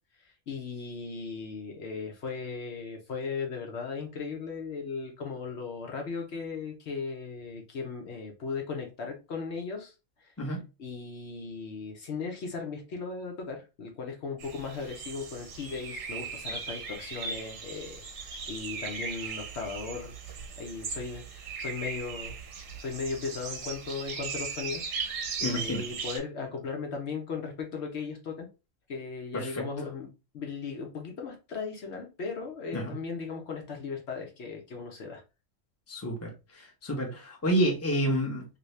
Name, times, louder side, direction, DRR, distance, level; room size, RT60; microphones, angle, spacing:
voice 1, 0.2-9.9 10.2-10.3 10.8-20.1 20.6-22.4 22.8-24.8 25.4-28.5 28.9-30.1 30.3-35.2, left 5 dB, 60° left, 1.0 m, -37 dB
sound 1, 14.4-26.2, right 5 dB, 75° right, 1.2 m, -38 dB
voice 2, 25.4-25.8 29.3-29.5 32.7-32.9 35.9-36.3 36.5-38.5, equal, 15° left, 0.7 m, -29 dB
2.7 x 2.7 x 3.1 m
omnidirectional pair, 1.3 m